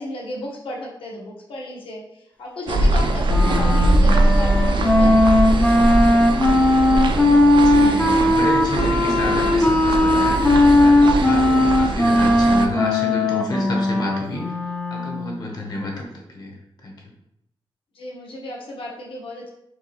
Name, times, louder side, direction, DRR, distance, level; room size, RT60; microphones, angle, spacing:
voice 1, 0.0-6.4 17.9-19.5, left 1 dB, 70° left, -3 dB, 1.1 m, -34 dB
sound 1, 2.7-12.7, right 2 dB, 60° right, 0.4 m, -21 dB
voice 2, 3.2-3.6 7.4-14.6 14.9-16.5 16.8-16.9, left 1 dB, 45° left, -1 dB, 0.9 m, -30 dB
Wind instrument woodwind instrument, 3.3-15.3, left 1 dB, 15° left, 0.4 m, -18 dB
4.5 x 2.8 x 2.9 m, 0.79 s
wide cardioid pair, 165°, 9 cm